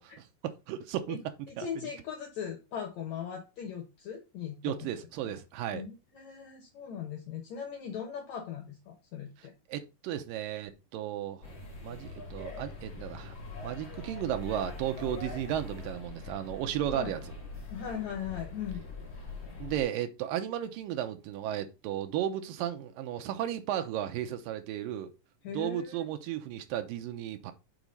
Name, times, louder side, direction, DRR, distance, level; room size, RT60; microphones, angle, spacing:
voice 1, 0.0-1.9 4.6-5.8 9.4-11.5 11.8-13.3 13.6-17.2 19.6-25.1 25.5-27.5, right 11 dB, 80° right, 2.5 m, -34 dB
voice 2, 1.5-4.9 5.2-5.4 5.7-9.5 16.9-17.1 17.7-18.8 25.4-26.1, left 8 dB, 65° left, 2.1 m, -39 dB
sound 1, 11.4-19.8, left 3 dB, 30° left, 2.4 m, -43 dB
6.1 x 4.1 x 5.1 m
omnidirectional pair, 4.0 m